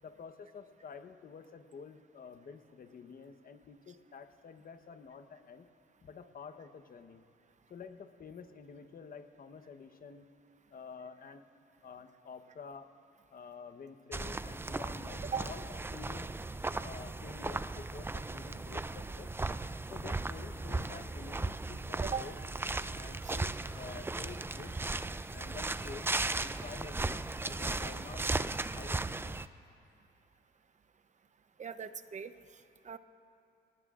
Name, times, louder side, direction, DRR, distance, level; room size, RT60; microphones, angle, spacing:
voice 1, 0.0-5.7 6.0-7.2 7.7-10.3 10.7-11.4 11.8-12.9 13.3-15.6 15.9-16.3 16.8-19.4 19.9-22.4 22.9-24.8 25.3-29.4, left 6 dB, 45° left, 9 dB, 1.0 m, -49 dB
sound 1, 14.1-29.5, right 3 dB, 10° right, 0.4 m, -37 dB
voice 2, 31.6-32.3 32.8-33.0, right 6 dB, 35° right, 11 dB, 0.8 m, -38 dB
29.5 x 19.5 x 2.5 m, 2.5 s
cardioid pair, 90°, 20 cm